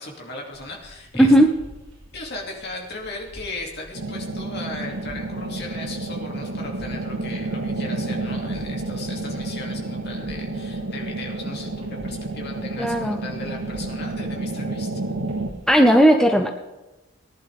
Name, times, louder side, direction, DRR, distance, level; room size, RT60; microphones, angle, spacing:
voice 1, 0.0-1.3 2.1-14.9, left 2 dB, 50° left, 0 dB, 2.7 m, -37 dB
sound 1, 0.5-15.7, right 1 dB, 30° right, 5.2 m, -48 dB
voice 2, 1.1-1.5 12.8-13.2 15.7-16.5, equal, 5° left, 4 dB, 0.5 m, -15 dB
sound 2, 3.9-15.5, right 2 dB, 65° right, 1.1 m, -30 dB
sound 3, 5.3-13.1, left 1 dB, 65° left, 5.4 m, -51 dB
18.5 x 11.0 x 3.6 m, 1.1 s
head